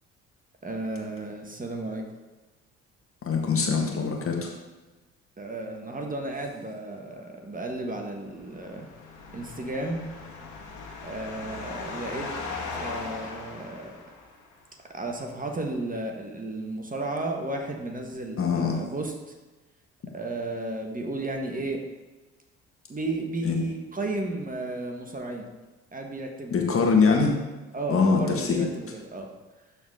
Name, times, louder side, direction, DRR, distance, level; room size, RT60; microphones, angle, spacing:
voice 1, 0.6-2.0 5.4-8.9 9.3-10.1 11.0-12.3 12.8-14.0 14.9-19.1 20.1-21.8 22.9-25.5 25.9-26.6 27.7-29.3, right 2 dB, 25° right, 2 dB, 1.5 m, -33 dB
voice 2, 3.2-4.5 18.4-18.8 23.4-23.6 26.5-27.3 27.9-28.6, left 5 dB, 45° left, 1 dB, 1.7 m, -23 dB
sound 1, 8.2-14.5, left 4 dB, 65° left, 1.5 m, -38 dB
12.0 x 4.3 x 3.8 m, 1.2 s
hypercardioid pair, 55°, 32 cm